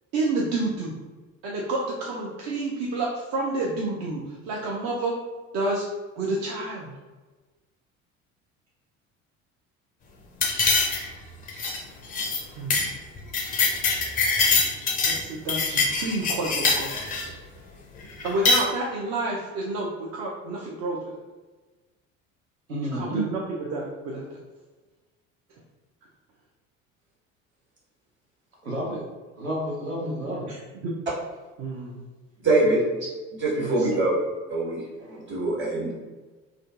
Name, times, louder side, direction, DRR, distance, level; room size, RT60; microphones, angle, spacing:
voice 1, 0.1-0.9 1.4-5.1 5.5-5.8 6.2-6.9 12.0-12.3 12.6-12.9 15.0-17.4 18.2-21.0 22.9-24.2 30.0-30.9 31.6-32.0 33.6-33.9, right 2 dB, 45° right, -3 dB, 0.5 m, -30 dB
sound 1, 10.4-11.2 11.5-11.8 12.1-12.4 12.7-12.9 13.2-15.2 15.5-17.3 18.2-18.6, left 3 dB, 20° left, 0.4 m, -23 dB
voice 2, 22.7-23.2 28.6-29.0 29.3-30.5, right 1 dB, 85° right, -5 dB, 0.7 m, -30 dB
voice 3, 32.4-32.8 33.4-34.1 34.5-35.9, right 2 dB, 30° right, -7 dB, 1.4 m, -24 dB
2.4 x 2.3 x 2.3 m, 1.3 s
figure-of-eight pair, 60°, 40 cm